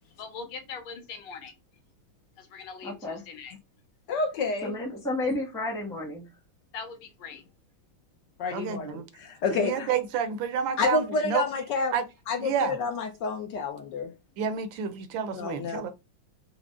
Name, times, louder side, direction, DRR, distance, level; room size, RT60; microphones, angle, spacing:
voice 1, 0.2-1.5 2.4-3.5 6.7-7.5, left 5 dB, 90° left, 1.9 m, -41 dB
voice 2, 2.8-3.2 4.6-6.4, left 2 dB, 5° left, 0.7 m, -32 dB
voice 3, 4.1-4.7 8.4-9.9 10.8-11.9 12.3-14.1 15.3-15.9, left 4 dB, 70° left, 1.1 m, -29 dB
voice 4, 8.5-9.0 9.5-11.4 11.9-12.0 12.4-12.8 14.4-15.9, right 7 dB, 75° right, 1.2 m, -29 dB
4.8 x 2.0 x 3.6 m
omnidirectional pair, 2.3 m